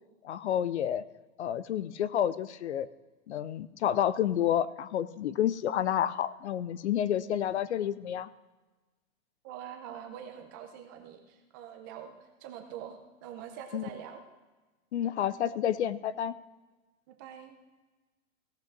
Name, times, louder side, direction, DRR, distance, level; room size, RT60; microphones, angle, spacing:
voice 1, 0.2-1.0 1.4-2.9 3.3-8.3 13.7-13.8 14.9-16.3, left 10 dB, 55° left, 17 dB, 0.5 m, -29 dB
voice 2, 9.4-14.2 17.1-17.6, right 9 dB, 15° right, 4 dB, 0.5 m, -44 dB
16.0 x 5.8 x 5.9 m, 1.2 s
hypercardioid pair, 160°, 41 cm